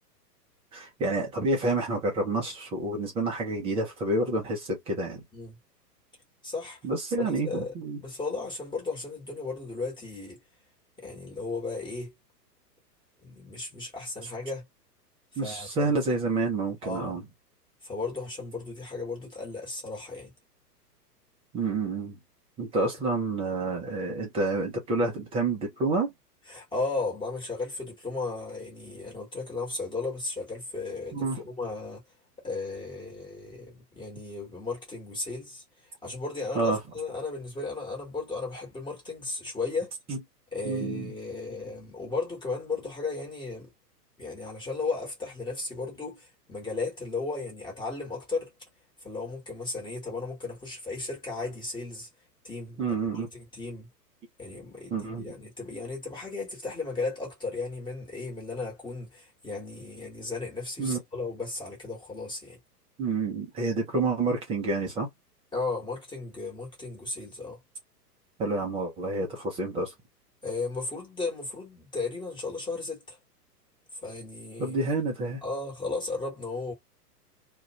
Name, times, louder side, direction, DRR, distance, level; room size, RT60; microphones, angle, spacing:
voice 1, 0.7-5.2 6.8-8.0 15.4-17.2 21.5-22.2 22.6-26.1 31.1-31.4 36.5-36.8 40.1-40.2 40.6-41.1 52.8-53.3 54.9-55.3 60.8-61.0 63.0-65.1 68.4-69.9 74.6-75.4, right 3 dB, 10° right, 0.5 m, -28 dB
voice 2, 6.4-6.8 7.2-10.4 11.0-12.1 13.2-14.6 15.4-15.9 16.8-17.2 17.8-20.3 26.5-32.0 32.4-35.6 36.0-39.9 40.5-43.7 44.2-48.5 49.0-52.1 52.4-52.8 53.3-53.9 54.4-62.6 65.5-67.6 70.4-73.2 74.0-74.8 75.4-76.7, left 3 dB, 10° left, 1.2 m, -35 dB
2.4 x 2.3 x 2.9 m
figure-of-eight pair, 115°, 49 cm